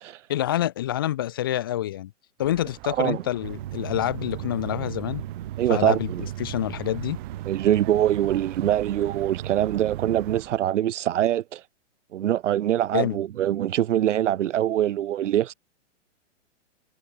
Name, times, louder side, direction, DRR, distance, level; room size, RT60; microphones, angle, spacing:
voice 1, 0.3-2.1 2.4-5.2 5.7-6.1 6.4-7.2 12.9-13.2, left 13 dB, 20° left, 0.6 m, -27 dB
sound 1, 2.4-10.6, right 30 dB, 25° right, 5.1 m, -45 dB
voice 2, 2.9-3.2 5.6-6.2 7.5-11.6 12.1-15.5, right 12 dB, 70° right, 0.7 m, -23 dB
sound 2, 3.4-10.4, right 13 dB, 40° right, 5.7 m, -35 dB
hypercardioid pair, 175°, 37 cm